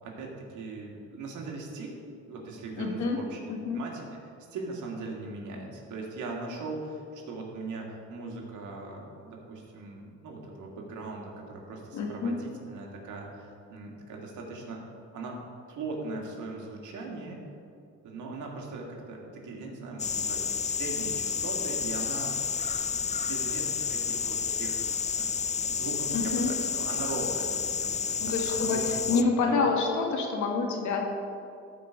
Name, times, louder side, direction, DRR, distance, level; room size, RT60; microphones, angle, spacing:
voice 1, 0.0-3.4 3.7-4.1 4.5-14.9 15.1-15.4 15.7-17.4 18.0-22.4 22.9-25.4 25.7-29.6, right 3 dB, 80° right, -1 dB, 1.9 m, -39 dB
voice 2, 2.8-3.2 3.5-3.8 11.9-12.3 26.1-26.5 28.2-31.0, left 4 dB, 75° left, 2 dB, 1.6 m, -27 dB
sound 1, 20.0-29.2, left 6 dB, 25° left, 0.4 m, -30 dB
14.0 x 4.8 x 5.0 m, 2.4 s
cardioid pair, 90°, 30 cm